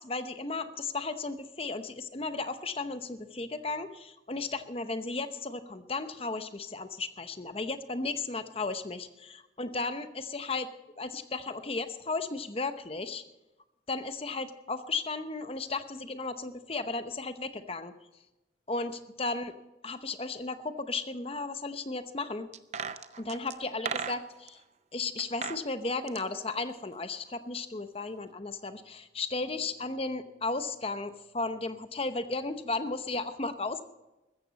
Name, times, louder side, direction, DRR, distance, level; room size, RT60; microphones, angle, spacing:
voice 1, 0.0-10.7 11.0-13.2 13.9-17.9 18.7-19.5 19.8-22.5 23.2-24.6 24.9-33.8, left 3 dB, 30° left, 10 dB, 0.8 m, -35 dB
sound 1, 22.5-24.5 25.2-25.6 25.9-27.3 27.6-27.7, right 6 dB, 35° right, 0.5 m, -38 dB
14.5 x 14.0 x 4.1 m, 0.99 s
head